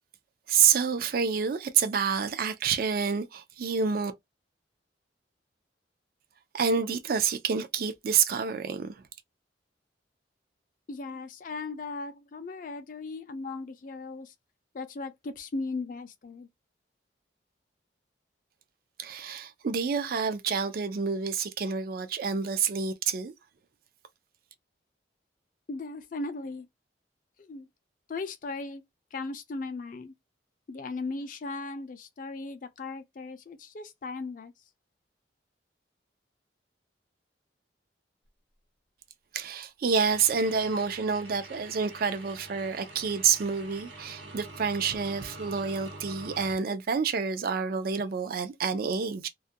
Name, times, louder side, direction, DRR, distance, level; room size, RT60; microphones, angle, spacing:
voice 1, 0.5-4.1 6.5-8.9 19.0-23.3 39.3-49.3, right 6 dB, 55° right, 0.4 m, -28 dB
voice 2, 10.9-14.3 14.7-16.5 25.7-26.7 27.4-27.7 28.1-28.8 29.1-30.1 30.7-34.5, left 3 dB, 45° left, 0.4 m, -37 dB
sound 1, 40.0-46.5, right 2 dB, 85° right, 1.0 m, -45 dB
2.3 x 2.1 x 2.5 m
head